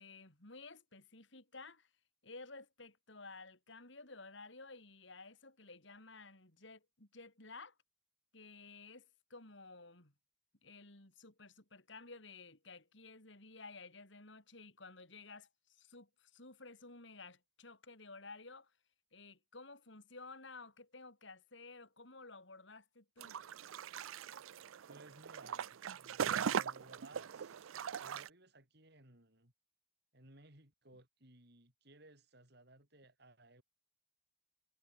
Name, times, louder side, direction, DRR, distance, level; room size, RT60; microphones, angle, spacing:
voice 1, 0.0-1.9 2.2-7.8 8.3-10.1 10.6-18.7 19.1-23.4, left 3 dB, 65° left, 3.9 m, -54 dB
sound 1, 23.2-28.3, right 8 dB, 80° right, 0.5 m, -40 dB
voice 2, 24.9-29.5 30.1-33.6, right 2 dB, 55° right, 5.9 m, -60 dB
head